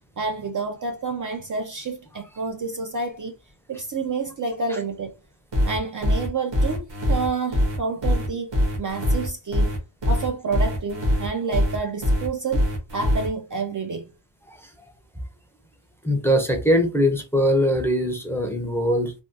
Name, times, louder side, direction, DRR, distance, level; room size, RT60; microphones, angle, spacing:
voice 1, 0.2-3.3 3.7-5.1 5.7-9.8 10.1-12.6 12.9-14.1, right 4 dB, 45° right, 0.4 m, -29 dB
sound 1, 5.5-13.3, equal, 65° right, 1.3 m, -22 dB
voice 2, 14.5-14.9 16.0-19.1, equal, 5° left, 0.5 m, -22 dB
3.4 x 2.2 x 2.6 m
wide cardioid pair, 115°, 47 cm